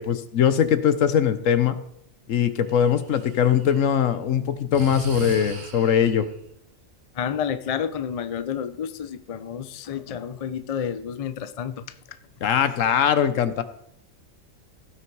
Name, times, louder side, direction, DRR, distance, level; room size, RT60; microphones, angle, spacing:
voice 1, 0.0-1.8 2.3-6.3 12.4-13.6, left 8 dB, 75° left, 12 dB, 1.2 m, -21 dB
Breathing, 2.7-3.9 4.7-6.3, right 5 dB, 55° right, 1.4 m, -37 dB
voice 2, 7.1-11.8, left 8 dB, 50° left, 12 dB, 0.4 m, -30 dB
16.0 x 6.0 x 4.7 m, 0.73 s
omnidirectional pair, 1.4 m